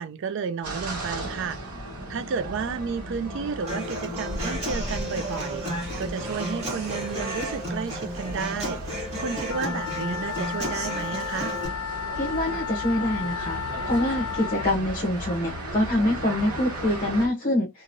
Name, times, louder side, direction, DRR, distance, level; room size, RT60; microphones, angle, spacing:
voice 1, 0.0-1.6 2.1-5.6 6.0-11.6, right 5 dB, 55° right, 0.3 m, -32 dB
sound 1, 0.6-17.3, right 1 dB, 80° right, 1.2 m, -36 dB
Human voice / Acoustic guitar, 3.7-11.7, equal, 30° right, 1.5 m, -33 dB
Wind instrument woodwind instrument, 9.4-14.7, left 8 dB, 65° left, 0.3 m, -33 dB
voice 2, 12.2-13.6 13.8-17.7, left 1 dB, 35° left, 0.8 m, -25 dB
2.9 x 2.5 x 2.5 m
head